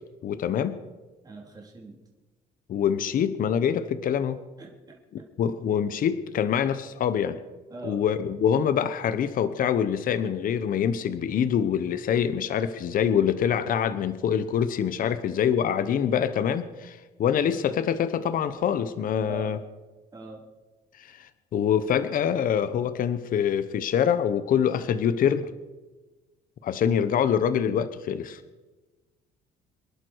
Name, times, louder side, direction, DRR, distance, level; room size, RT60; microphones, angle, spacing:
voice 1, 0.2-0.8 2.7-4.4 5.1-7.4 7.8-19.6 21.0-25.5 26.6-28.4, left 8 dB, 55° left, 13 dB, 1.0 m, -25 dB
voice 2, 1.2-2.0 4.6-5.0 7.7-8.0 19.3-19.6 20.1-20.4, right 3 dB, 20° right, -2 dB, 3.8 m, -41 dB
26.5 x 11.0 x 4.7 m, 1.2 s
cardioid pair, 110°, 17 cm